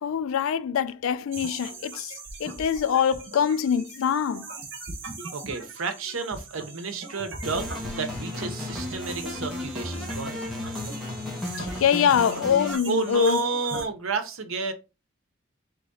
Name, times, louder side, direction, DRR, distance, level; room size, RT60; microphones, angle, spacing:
voice 1, 0.0-2.1 2.4-4.5 11.6-13.4, left 8 dB, 80° left, 0.3 m, -24 dB
sound 1, 1.3-13.8, right 3 dB, 60° right, 1.1 m, -40 dB
voice 2, 5.3-7.7 8.0-10.4 12.9-14.7, right 4 dB, 85° right, 0.8 m, -31 dB
sound 2, 7.4-12.8, left 2 dB, ahead, 1.3 m, -34 dB
3.9 x 3.0 x 3.7 m
head